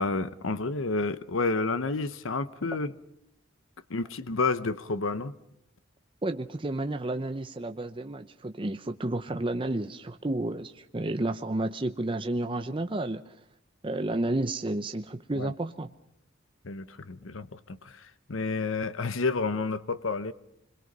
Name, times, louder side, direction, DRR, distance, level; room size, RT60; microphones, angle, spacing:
voice 1, 0.0-2.9 3.9-5.4 15.4-15.5 16.6-20.3, left 3 dB, 80° left, 0.9 m, -30 dB
voice 2, 6.2-13.3 13.8-15.9, right 2 dB, 25° right, 0.8 m, -31 dB
26.5 x 22.5 x 5.4 m
head